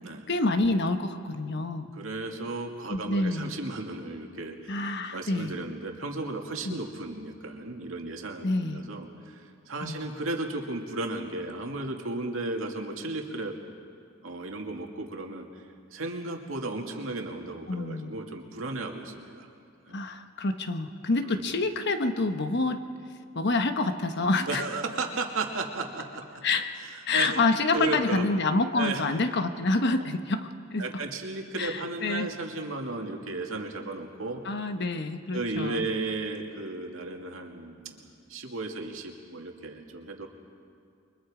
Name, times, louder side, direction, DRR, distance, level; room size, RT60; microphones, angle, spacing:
voice 1, 0.3-1.9 2.9-3.5 4.7-5.5 6.6-6.8 8.4-8.8 9.8-10.0 17.7-18.2 19.9-22.8 23.3-24.6 26.4-26.7 27.0-30.9 31.6-32.3 34.4-35.9, left 3 dB, 60° left, 8 dB, 1.1 m, -27 dB
voice 2, 1.9-4.7 5.1-13.6 14.2-15.5 15.9-19.5 19.9-20.0 21.3-21.5 24.5-26.2 26.8-27.3 27.7-28.2 28.8-29.0 29.9-30.1 30.8-34.4 35.3-40.3, right 2 dB, 90° right, 2 dB, 2.2 m, -34 dB
29.0 x 23.5 x 5.0 m, 2.4 s
head